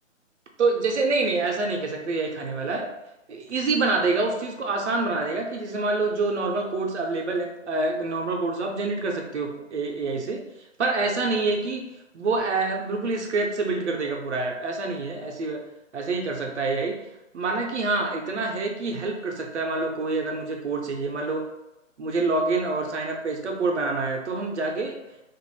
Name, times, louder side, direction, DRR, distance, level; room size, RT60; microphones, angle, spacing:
voice 1, 0.6-2.9 3.3-10.4 10.8-15.6 15.9-17.0 17.3-21.5 22.0-25.0, right 3 dB, 60° right, 1 dB, 0.6 m, -26 dB
2.5 x 2.2 x 3.1 m, 0.92 s
hypercardioid pair, 175°, 39 cm